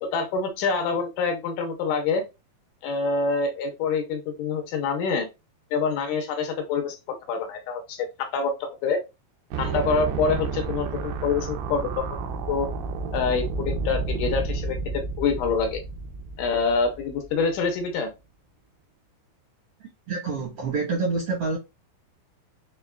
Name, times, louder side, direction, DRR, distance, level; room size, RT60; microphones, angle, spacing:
voice 1, 0.0-2.2 2.8-5.3 5.7-9.0 9.6-12.2 12.5-12.7 13.1-15.8 16.4-18.1, left 5 dB, 75° left, 2.0 m, -26 dB
sound 1, 9.5-17.6, right 4 dB, 90° right, 2.5 m, -31 dB
voice 2, 20.1-21.6, right 4 dB, 70° right, 1.3 m, -27 dB
6.3 x 2.3 x 2.3 m
omnidirectional pair, 4.2 m